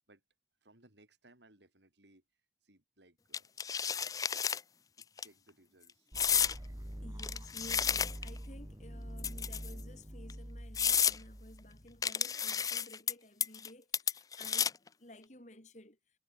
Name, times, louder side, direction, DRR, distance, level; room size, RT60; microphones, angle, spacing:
voice 1, 0.6-2.2 2.6-3.5 5.0-6.1, right 1 dB, 80° right, 5.5 m, -64 dB
sound 1, 3.3-4.6 5.0-5.2 6.1-6.6 7.2-8.4 9.2-9.8 10.3-10.4 10.7-11.2 12.0-13.1 13.4-13.7 13.9-14.9, left 8 dB, 20° left, 0.4 m, -31 dB
sound 2, 6.1-12.0, equal, 20° right, 2.3 m, -46 dB
voice 2, 7.0-16.0, left 1 dB, 40° left, 4.3 m, -54 dB
head